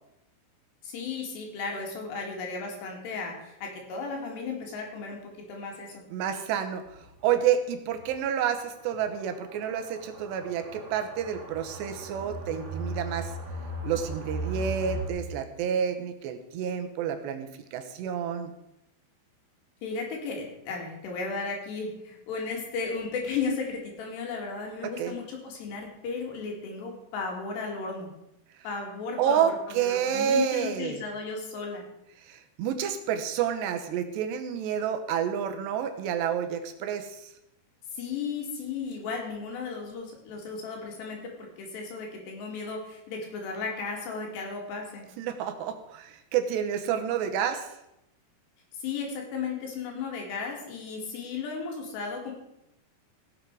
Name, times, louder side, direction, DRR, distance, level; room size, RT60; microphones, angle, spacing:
voice 1, 0.8-6.0 19.8-28.1 28.6-31.8 37.9-45.1 48.8-52.3, left 4 dB, 80° left, 1 dB, 4.5 m, -35 dB
voice 2, 6.1-6.8 7.2-13.3 13.8-18.5 25.0-25.2 29.2-31.0 32.3-37.3 45.2-47.7, right 8 dB, 90° right, 7 dB, 3.3 m, -29 dB
sound 1, 6.9-7.0 7.3-7.4 7.9-8.0 8.9-15.1, right 1 dB, 45° right, 3.6 m, -37 dB
17.5 x 7.6 x 4.8 m, 0.86 s
omnidirectional pair, 4.8 m